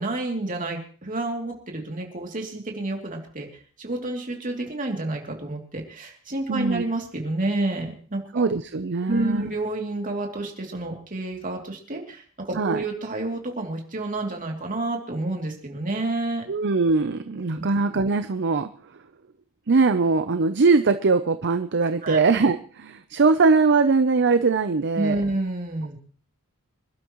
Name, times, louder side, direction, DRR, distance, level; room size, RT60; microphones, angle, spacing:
voice 1, 0.0-3.5 3.8-8.5 9.1-16.4 17.4-17.7 22.0-22.2 24.9-26.0, right 2 dB, 35° right, 1 dB, 2.8 m, -29 dB
voice 2, 6.5-6.9 8.3-9.5 12.6-12.8 16.5-18.7 19.7-25.2, right 4 dB, 55° right, 10 dB, 0.7 m, -21 dB
26.5 x 12.0 x 3.1 m, 0.42 s
head